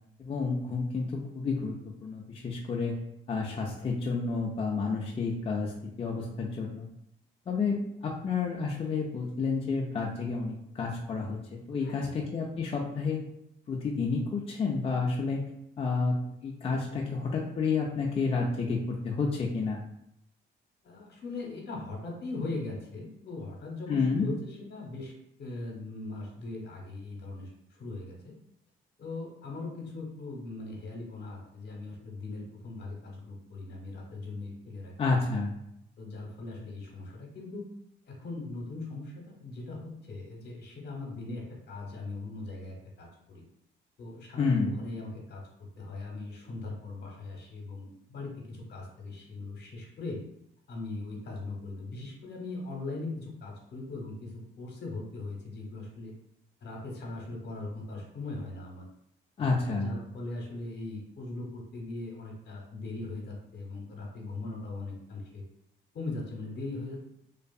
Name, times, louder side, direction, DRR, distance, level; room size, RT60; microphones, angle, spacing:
voice 1, 0.2-1.7 2.0-3.0 3.3-5.7 6.0-6.9 7.5-13.2 13.7-15.5 15.8-19.8 23.9-24.3 35.0-35.5 44.4-44.7 59.4-59.9, left 4 dB, 30° left, -1 dB, 0.4 m, -30 dB
voice 2, 11.8-12.2 20.8-25.1 25.4-28.3 29.0-34.9 36.0-37.6 38.1-43.4 44.0-45.4 45.8-50.2 50.7-56.1 56.6-58.9 59.4-65.4 65.9-67.1, left 2 dB, 60° left, -1 dB, 0.9 m, -40 dB
2.6 x 2.4 x 2.3 m, 0.78 s
cardioid pair, 90°, 20 cm